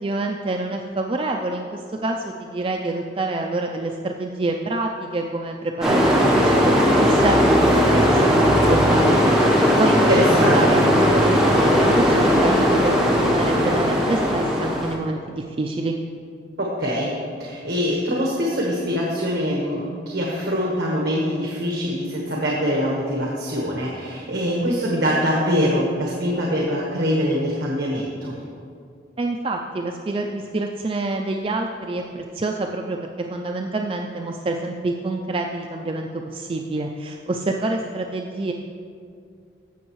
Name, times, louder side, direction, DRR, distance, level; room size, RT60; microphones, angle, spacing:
voice 1, 0.0-6.7 7.0-10.0 10.5-16.0 29.2-38.5, right 2 dB, 30° right, 2 dB, 0.3 m, -27 dB
sound 1, 5.8-15.0, equal, 5° right, 1.0 m, -17 dB
voice 2, 10.1-10.8 16.6-17.1 17.4-28.4, equal, 65° right, -3 dB, 1.2 m, -23 dB
15.5 x 6.3 x 3.1 m, 2.3 s
head